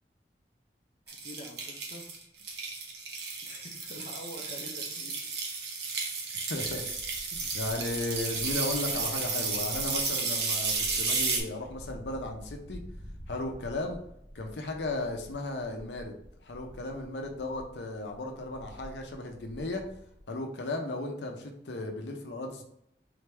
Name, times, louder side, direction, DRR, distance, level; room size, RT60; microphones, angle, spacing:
voice 1, 1.1-2.1 3.4-5.3, equal, 45° left, 1 dB, 0.6 m, -46 dB
sound 1, 1.1-11.4, right 4 dB, 70° right, 0.9 m, -33 dB
voice 2, 6.5-6.8 7.5-12.8 13.3-14.0 14.3-16.2 16.4-19.9 20.3-22.6, left 2 dB, 85° left, 3 dB, 0.7 m, -35 dB
sound 2, 6.6-20.3, equal, 35° right, 0.9 m, -49 dB
3.9 x 3.4 x 3.3 m, 0.76 s
head